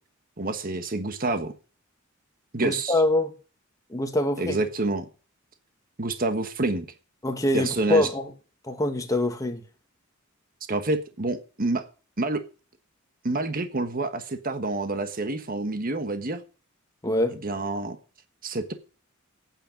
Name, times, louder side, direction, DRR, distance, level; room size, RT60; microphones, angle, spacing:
voice 1, 0.4-1.5 2.5-3.0 4.4-5.0 6.0-6.8 7.5-8.1 10.7-11.8 12.2-12.4 13.2-16.4 17.4-18.0 18.4-18.7, right 2 dB, 45° right, 1.4 m, -28 dB
voice 2, 2.6-3.3 3.9-4.6 7.2-8.3 8.6-9.6 17.0-17.4, left 1 dB, 15° left, 1.9 m, -24 dB
9.1 x 9.0 x 8.9 m
head